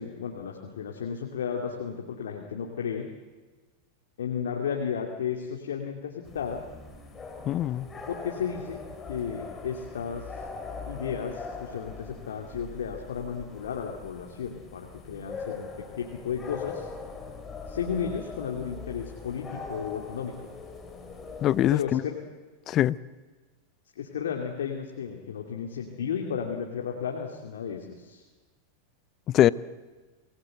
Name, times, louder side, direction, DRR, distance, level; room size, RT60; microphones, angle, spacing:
voice 1, 0.0-3.1 4.2-6.6 8.1-8.8 9.1-10.3 10.9-16.9 17.7-20.3 21.7-22.2 24.0-28.2, left 7 dB, 80° left, 2.6 m, -33 dB
sound 1, 6.2-21.8, left 4 dB, 20° left, 4.4 m, -41 dB
voice 2, 7.5-7.9 21.4-22.0 22.7-23.0 29.3-29.5, left 13 dB, 40° left, 0.7 m, -22 dB
27.0 x 19.0 x 7.9 m
hypercardioid pair, 100°, 0 cm